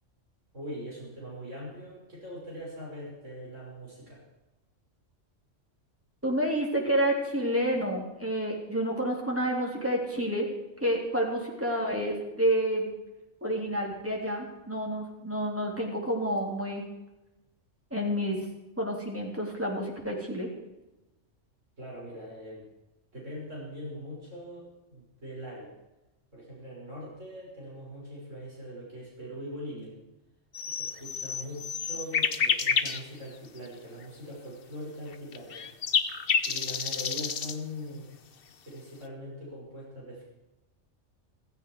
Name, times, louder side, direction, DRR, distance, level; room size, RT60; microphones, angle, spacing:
voice 1, 0.5-4.2 21.8-22.7 23.1-25.7 26.3-29.9 30.7-35.7 36.4-38.1 38.6-40.2, equal, 80° right, -5 dB, 6.7 m, -41 dB
voice 2, 6.2-10.5 10.8-12.9 13.4-16.8 17.9-18.4 18.8-20.5, equal, 10° right, -1 dB, 3.5 m, -29 dB
sound 1, 30.5-33.0 33.6-33.7 35.1-37.6, left 6 dB, 50° left, 1.0 m, -29 dB
15.5 x 15.0 x 4.8 m, 0.98 s
omnidirectional pair, 1.3 m